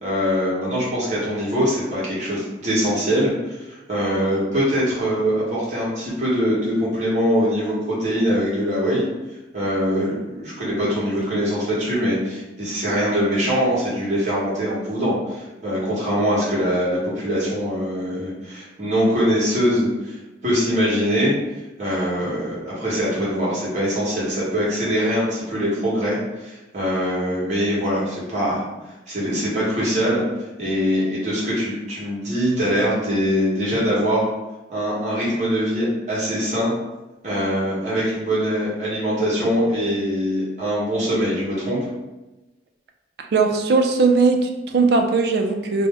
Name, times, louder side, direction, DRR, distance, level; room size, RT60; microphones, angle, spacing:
voice 1, 0.0-3.6 3.9-9.1 9.5-21.3 21.8-28.6 29.1-30.2 30.6-34.3 34.7-36.7 37.2-41.8, equal, 40° right, -7 dB, 1.1 m, -22 dB
voice 2, 43.2-45.9, right 4 dB, 65° right, 4 dB, 0.3 m, -19 dB
2.7 x 2.0 x 3.4 m, 1.0 s
head